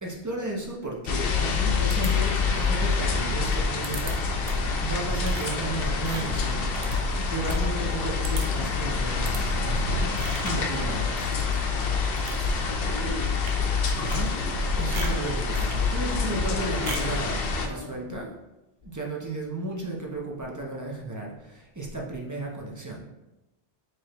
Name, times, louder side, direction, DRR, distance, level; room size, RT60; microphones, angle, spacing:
voice 1, 0.0-4.4 4.8-6.7 7.3-11.4 14.0-14.3 14.8-18.3 18.8-23.0, right 2 dB, 25° right, -2 dB, 0.5 m, -34 dB
sound 1, 1.1-17.7, left 4 dB, 65° left, 0.7 m, -26 dB
sound 2, 1.9-2.6 3.8-4.1 4.4-4.7 5.2-7.6 7.9-8.0 8.2-8.7 9.2-9.4 10.1-10.7 11.1-11.7 12.0-12.5 13.3-13.6 13.9-14.6 14.9-15.8 16.8-17.2, right 3 dB, 55° right, 0.7 m, -39 dB
voice 2, 12.3-13.4 16.3-17.9, left 1 dB, 20° left, -6 dB, 0.6 m, -37 dB
4.8 x 3.0 x 3.0 m, 0.98 s
omnidirectional pair, 1.1 m